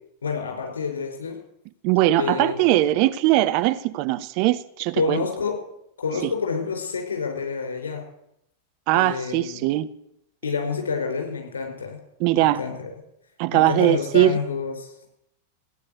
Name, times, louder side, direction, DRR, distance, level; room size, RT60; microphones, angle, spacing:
voice 1, 0.2-1.4 2.2-3.0 5.0-5.6 6.0-8.0 8.9-9.7 10.4-12.0 12.3-12.9 13.5-15.1, left 5 dB, 70° left, 5.2 m, -28 dB
voice 2, 1.8-5.2 6.2-6.3 8.9-9.9 12.2-12.6 13.4-14.4, right 15 dB, 45° right, 0.7 m, -20 dB
16.5 x 9.7 x 8.2 m
figure-of-eight pair, 90°, 0 cm